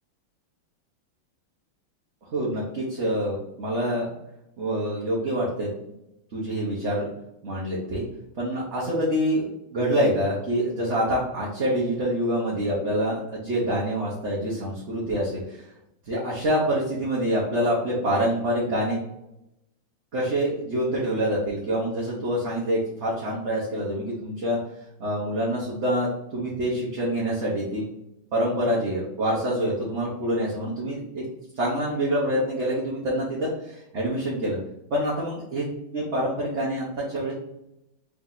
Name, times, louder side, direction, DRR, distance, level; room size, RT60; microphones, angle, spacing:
voice 1, 2.3-4.2 4.6-5.7 6.3-7.1 7.4-8.0 8.4-15.6 16.1-19.0 20.1-24.6 25.0-27.9 28.3-31.2 31.5-34.6 34.9-37.3, equal, 40° right, -6 dB, 1.2 m, -26 dB
3.5 x 3.5 x 4.0 m, 0.85 s
omnidirectional pair, 2.2 m